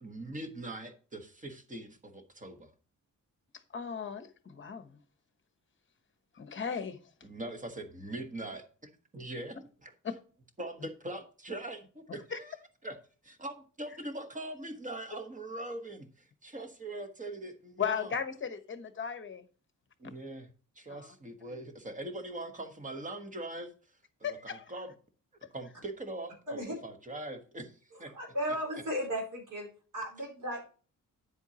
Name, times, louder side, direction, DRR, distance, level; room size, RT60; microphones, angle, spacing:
voice 1, 0.0-2.7 7.2-8.6 9.1-9.9 10.6-12.5 12.8-13.0 13.2-18.1 20.0-20.5 20.7-23.7 24.2-24.9 25.5-28.1, right 1 dB, 25° right, 6 dB, 1.2 m, -42 dB
voice 2, 3.7-5.0 6.3-7.0 12.3-12.4 17.8-19.5 20.9-21.1 24.2-24.6, left 7 dB, 35° left, 10 dB, 1.0 m, -36 dB
voice 3, 28.1-29.7 29.9-30.6, equal, 70° right, -1 dB, 4.4 m, -35 dB
9.8 x 7.9 x 2.8 m, 0.40 s
wide cardioid pair, 170°, 32 cm